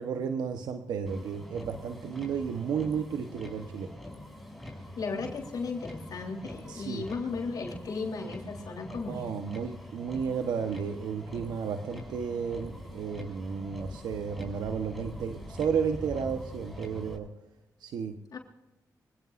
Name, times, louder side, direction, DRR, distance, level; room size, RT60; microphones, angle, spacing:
voice 1, 0.0-3.9 6.7-7.1 9.1-17.3 17.8-18.4, right 6 dB, 90° right, 6 dB, 1.1 m, -33 dB
Motor vehicle (road), 1.1-17.2, left 1 dB, ahead, 6.2 m, -44 dB
voice 2, 5.0-9.2 18.3-18.4, left 4 dB, 70° left, 0 dB, 3.6 m, -35 dB
25.0 x 17.5 x 2.6 m, 0.99 s
cardioid pair, 65°, 7 cm